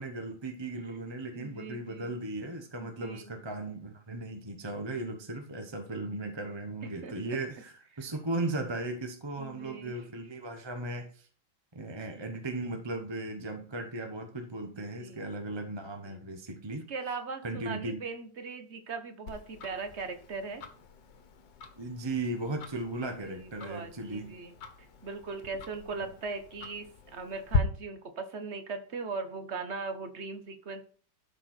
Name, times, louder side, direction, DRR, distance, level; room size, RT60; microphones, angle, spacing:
voice 1, 0.0-11.3 11.7-16.8 17.4-18.0 21.8-24.4, right 2 dB, 20° right, 4 dB, 0.8 m, -37 dB
voice 2, 1.3-2.2 2.8-3.3 6.8-7.2 7.9-8.1 9.4-9.9 14.8-15.3 16.0-16.2 16.9-20.6 23.2-30.9, right 4 dB, 40° right, 8 dB, 1.3 m, -39 dB
Tick-tock, 19.3-27.6, left 5 dB, 60° left, 1.9 m, -39 dB
12.5 x 6.0 x 4.4 m, 0.43 s
omnidirectional pair, 2.3 m